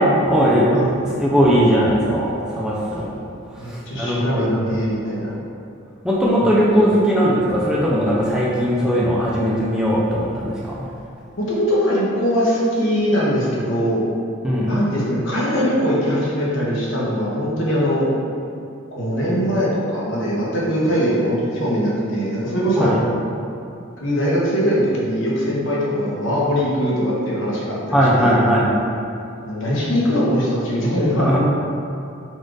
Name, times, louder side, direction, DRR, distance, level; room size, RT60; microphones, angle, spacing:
voice 1, 0.0-0.7 1.2-3.1 3.5-4.7 6.0-10.9 14.4-14.7 22.8-23.0 27.9-28.7 31.2-31.4, equal, 5° right, -6 dB, 0.4 m, -18 dB
voice 2, 0.7-1.2 3.6-5.3 6.4-6.5 11.4-14.0 14.7-18.1 18.9-22.9 24.0-28.3 29.4-31.3, equal, 65° left, -6 dB, 1.1 m, -21 dB
4.2 x 2.5 x 4.7 m, 2.6 s
head